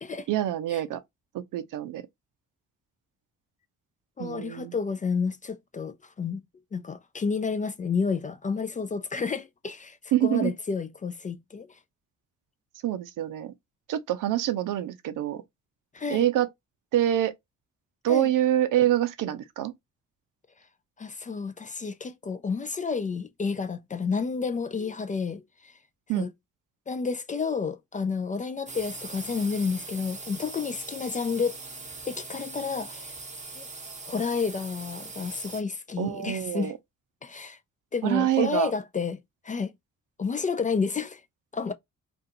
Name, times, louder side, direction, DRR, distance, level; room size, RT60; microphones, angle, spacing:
voice 1, 0.3-1.0 1.3-2.0 4.2-4.7 10.1-10.5 12.8-13.5 13.9-15.4 16.1-16.5 16.9-17.3 18.0-19.7 26.1-26.3 36.0-36.7 38.0-38.7, right 12 dB, 70° right, 0.5 m, -26 dB
voice 2, 4.2-6.4 6.7-11.7 15.9-16.3 18.1-18.3 21.0-25.7 26.1-26.3 26.9-31.6 32.1-33.2 33.6-33.7 34.1-36.7 37.2-37.6 37.9-39.2 39.4-39.7 40.2-41.2 41.5-41.7, left 5 dB, 25° left, 0.3 m, -30 dB
sound 1, 28.7-35.6, right 3 dB, 20° right, 0.7 m, -41 dB
2.5 x 2.4 x 2.6 m
supercardioid pair, 45°, 33 cm